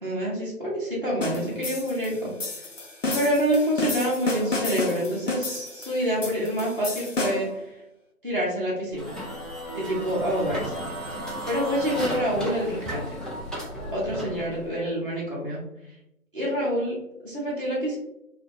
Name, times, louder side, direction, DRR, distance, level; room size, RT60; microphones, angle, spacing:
voice 1, 0.0-2.3 3.1-7.7 8.2-9.2 9.7-10.8 11.5-13.0 13.9-15.6 16.3-17.0 17.2-18.0, equal, 35° right, -7 dB, 0.6 m, -27 dB
sound 1, 1.2-7.6, left 2 dB, 55° left, 0.5 m, -31 dB
sound 2, 8.9-14.7, equal, ahead, 0.4 m, -34 dB
2.6 x 2.2 x 2.6 m, 0.85 s
figure-of-eight pair, 165°, 45 cm